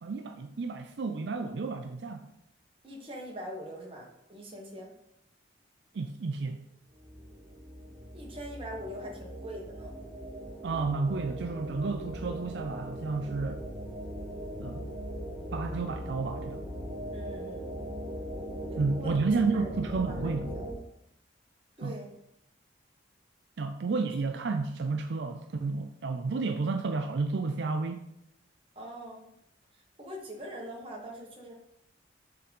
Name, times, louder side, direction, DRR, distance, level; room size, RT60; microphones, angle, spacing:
voice 1, 0.0-2.3 5.9-6.6 10.6-13.6 14.6-14.9 15.5-16.6 18.8-20.5 21.8-22.0 23.6-28.0, right 4 dB, 70° right, 6 dB, 0.4 m, -31 dB
voice 2, 2.8-5.0 8.1-10.0 17.1-17.7 18.7-19.2 19.5-20.2 20.5-20.8 21.8-22.1 28.7-29.3 30.0-31.5, equal, 30° right, -1 dB, 1.4 m, -43 dB
sound 1, 6.9-20.7, equal, 10° right, 1.5 m, -39 dB
6.8 x 3.8 x 5.3 m, 0.79 s
head